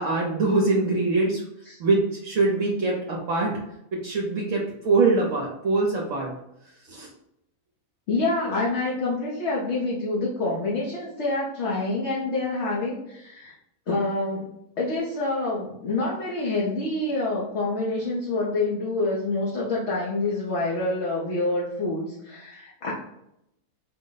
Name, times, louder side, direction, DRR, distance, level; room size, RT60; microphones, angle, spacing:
voice 1, 0.0-1.4 1.8-3.6 3.9-6.3 6.9-7.1, right 3 dB, 65° right, -2 dB, 1.0 m, -23 dB
voice 2, 8.1-13.5 13.9-22.9, left 2 dB, 55° left, -4 dB, 1.0 m, -27 dB
4.8 x 2.1 x 3.8 m, 0.81 s
omnidirectional pair, 1.6 m